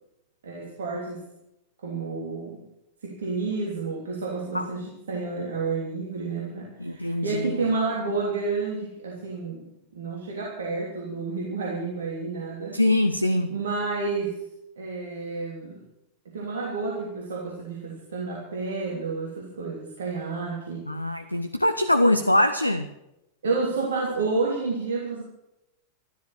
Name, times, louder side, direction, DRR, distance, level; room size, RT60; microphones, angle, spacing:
voice 1, 0.4-1.2 1.8-2.6 3.0-9.6 9.9-12.8 13.5-14.4 14.8-15.8 16.2-20.9 23.4-25.2, right 4 dB, 65° right, -2 dB, 3.2 m, -30 dB
voice 2, 6.8-7.5 12.7-13.5 20.9-22.9, left 1 dB, 85° left, 10 dB, 0.7 m, -23 dB
13.5 x 13.0 x 6.6 m, 0.88 s
figure-of-eight pair, 90°, 0 cm